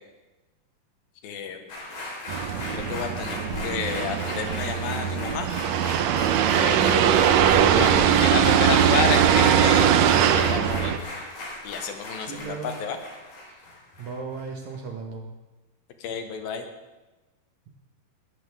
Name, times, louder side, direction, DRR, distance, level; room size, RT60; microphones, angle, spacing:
voice 1, 1.2-1.6 2.7-5.5 6.6-7.3 7.8-9.9 10.4-11.0 11.6-12.6 12.8-13.0 16.0-16.6, left 6 dB, 90° left, 6 dB, 3.1 m, -30 dB
sound 1, 1.7-14.4 14.7-14.8, left 2 dB, 60° left, 5.6 m, -37 dB
sound 2, 2.3-11.0, right 9 dB, 90° right, 1.5 m, -21 dB
voice 2, 12.2-12.7 14.0-15.3, right 4 dB, 65° right, 2 dB, 2.3 m, -36 dB
20.5 x 13.0 x 3.5 m, 1.1 s
omnidirectional pair, 4.1 m